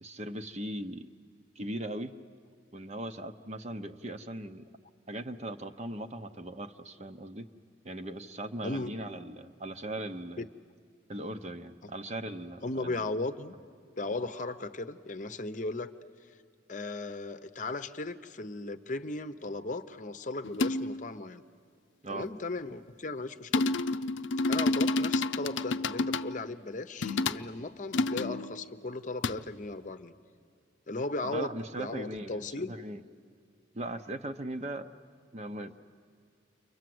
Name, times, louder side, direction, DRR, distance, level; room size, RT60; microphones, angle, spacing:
voice 1, 0.0-1.1 1.6-2.1 2.7-4.7 5.1-7.5 7.8-10.5 11.1-13.1 22.0-22.3 31.2-33.0 33.7-34.9 35.3-35.8, right 1 dB, 35° right, 8 dB, 0.8 m, -39 dB
voice 2, 12.6-13.6 14.0-15.9 16.7-21.4 22.1-23.7 24.5-30.1 30.9-32.8, left 2 dB, 40° left, 10 dB, 0.8 m, -36 dB
sound 1, 20.4-21.0 23.5-26.4 27.0-27.4 27.9-28.6 29.2-29.4, left 3 dB, 85° left, 0.6 m, -29 dB
29.5 x 24.0 x 7.8 m, 2.3 s
head